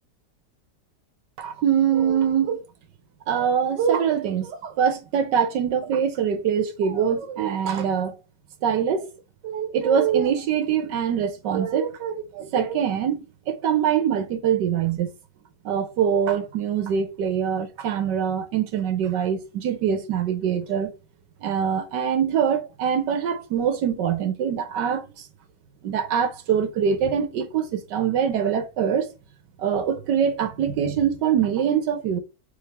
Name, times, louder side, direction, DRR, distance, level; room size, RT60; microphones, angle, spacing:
voice 1, 1.4-2.6 3.3-8.2 8.6-9.1 9.4-15.1 15.6-20.9 21.4-25.1 25.8-29.1 29.6-32.2, right 8 dB, 80° right, 1.5 m, -23 dB
3.7 x 3.3 x 4.2 m
omnidirectional pair, 1.8 m